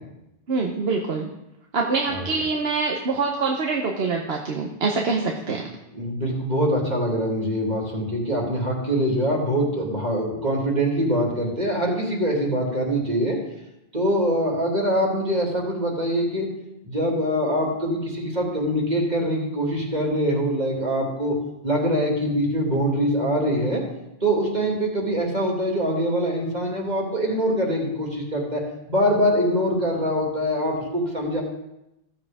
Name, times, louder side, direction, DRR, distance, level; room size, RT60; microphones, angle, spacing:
voice 1, 0.5-1.3 1.7-5.6, right 4 dB, 80° right, 1 dB, 1.3 m, -25 dB
voice 2, 5.9-13.4 13.9-16.5 16.8-21.4 21.6-23.8 24.2-28.6 28.9-31.4, equal, 45° right, -3 dB, 2.6 m, -23 dB
15.5 x 7.4 x 3.6 m, 0.90 s
omnidirectional pair, 1.0 m